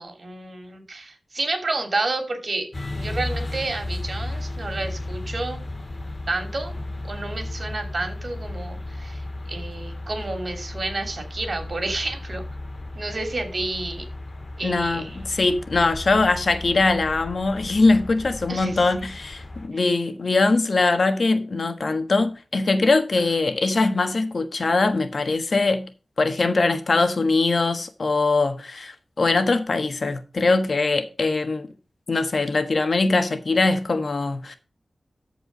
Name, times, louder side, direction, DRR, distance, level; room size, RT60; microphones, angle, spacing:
voice 1, 0.0-2.7 2.9-5.6 6.3-6.7 7.0-9.2 9.5-12.4 12.9-14.0 14.6-15.2 18.5-18.7, right 2 dB, 55° right, 2.9 m, -30 dB
sound 1, 2.7-19.7, left 2 dB, 45° left, 1.8 m, -34 dB
voice 2, 14.6-25.9 26.2-31.7 32.1-34.5, left 3 dB, 60° left, 1.3 m, -22 dB
13.5 x 4.7 x 5.2 m
wide cardioid pair, 70°, 0 cm